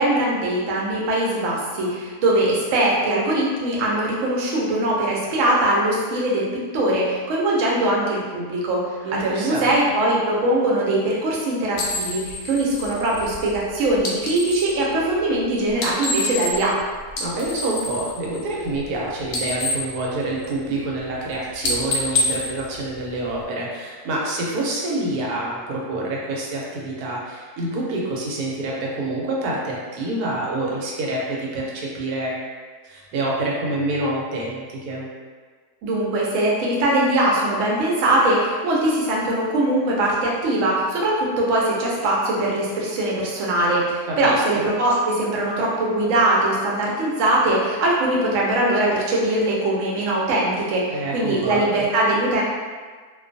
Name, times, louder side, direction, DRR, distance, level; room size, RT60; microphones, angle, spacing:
voice 1, 0.0-8.8 9.1-16.8 35.8-52.4, right 1 dB, 65° right, -4 dB, 0.9 m, -21 dB
voice 2, 9.0-9.9 17.2-32.3 32.8-35.1 44.1-44.6 50.9-51.6, right 2 dB, 85° right, -3 dB, 1.1 m, -27 dB
sound 1, 11.7-14.8 15.7-16.8 17.1-19.0 19.2-20.8 21.1-21.3 21.6-23.4, left 2 dB, 90° left, 1.1 m, -27 dB
2.5 x 2.2 x 2.5 m, 1.5 s
omnidirectional pair, 1.6 m